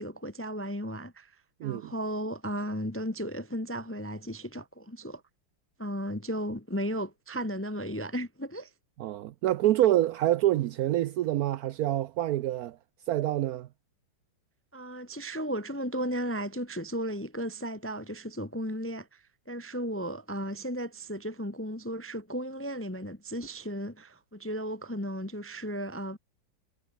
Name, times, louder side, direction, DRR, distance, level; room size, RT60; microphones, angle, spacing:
voice 1, 0.0-1.4 1.6-5.2 5.8-8.7 14.7-26.2, equal, 15° left, 0.4 m, -35 dB
voice 2, 1.6-1.9 9.0-12.8 13.1-13.7, right 14 dB, 85° right, 0.8 m, -26 dB
omnidirectional pair, 2.2 m